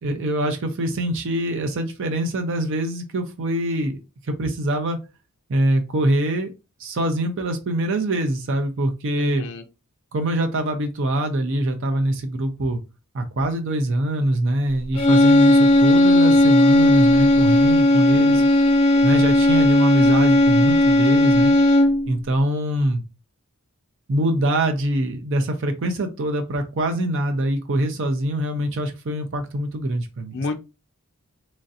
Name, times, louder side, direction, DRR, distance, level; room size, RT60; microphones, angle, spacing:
voice 1, 0.0-4.0 4.3-5.0 5.5-6.5 6.8-9.5 10.1-12.8 13.1-18.4 19.0-21.5 22.1-23.0 24.1-30.5, right 1 dB, 55° right, 0.5 m, -24 dB
sound 1, 14.9-22.1, left 1 dB, 25° left, 0.8 m, -16 dB
voice 2, 18.1-18.5 30.3-30.6, left 3 dB, 50° left, 0.3 m, -30 dB
3.1 x 2.5 x 2.6 m
head